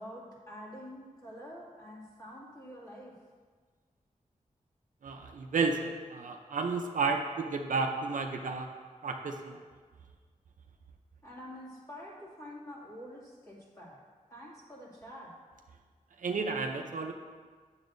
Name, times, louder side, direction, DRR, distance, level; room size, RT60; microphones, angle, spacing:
voice 1, 0.0-3.1 11.2-14.0 14.3-15.3, equal, 25° left, -7 dB, 2.4 m, -47 dB
voice 2, 5.0-8.7 9.0-9.6 16.2-17.1, right 4 dB, 70° right, 3 dB, 0.6 m, -32 dB
9.7 x 7.1 x 2.6 m, 1.5 s
wide cardioid pair, 95°, 14 cm